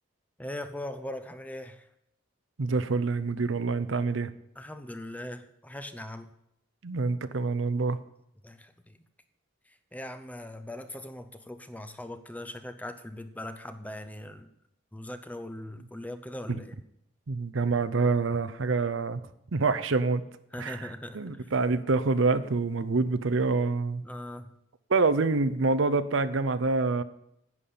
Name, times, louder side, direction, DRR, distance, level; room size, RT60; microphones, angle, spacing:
voice 1, 0.4-1.8 4.6-6.3 8.4-9.0 9.9-14.5 14.9-16.7 20.5-21.5 24.0-24.4, left 1 dB, 5° left, 9 dB, 0.6 m, -40 dB
voice 2, 2.6-4.3 6.8-8.0 16.5-16.6 17.3-19.2 19.5-20.2 20.6-24.0 24.9-27.0, right 3 dB, 65° right, 13 dB, 0.6 m, -26 dB
11.0 x 5.6 x 8.6 m, 0.79 s
head